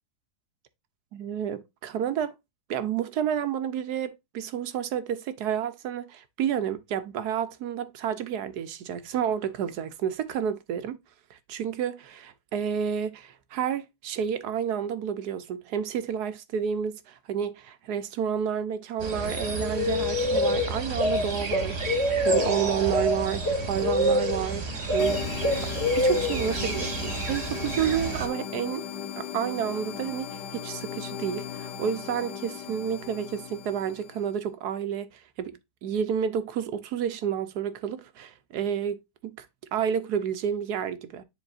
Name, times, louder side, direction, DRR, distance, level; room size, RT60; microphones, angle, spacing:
voice 1, 1.1-2.4 2.7-11.0 11.3-28.9 29.2-39.5 39.7-41.2, right 8 dB, 70° right, 1.2 m, -30 dB
sound 1, 19.0-28.3, equal, 40° right, 1.5 m, -27 dB
sound 2, 25.0-34.3, left 9 dB, 80° left, 1.5 m, -37 dB
9.9 x 4.0 x 2.5 m
omnidirectional pair, 1.8 m